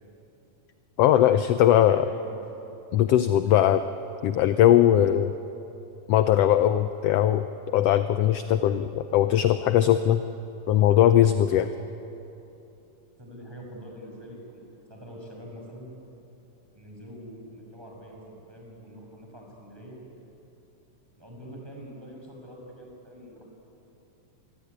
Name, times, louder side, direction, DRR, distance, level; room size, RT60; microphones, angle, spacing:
voice 1, 1.0-2.1 2.9-3.8 4.2-5.3 6.1-7.5 7.7-10.2 10.7-11.7, left 11 dB, 75° left, 11 dB, 1.5 m, -20 dB
voice 2, 1.8-2.4 13.2-14.6 14.9-15.9 16.7-20.0 21.2-23.5, equal, 5° right, -1 dB, 5.9 m, -44 dB
27.0 x 22.5 x 9.6 m, 3.0 s
omnidirectional pair, 3.5 m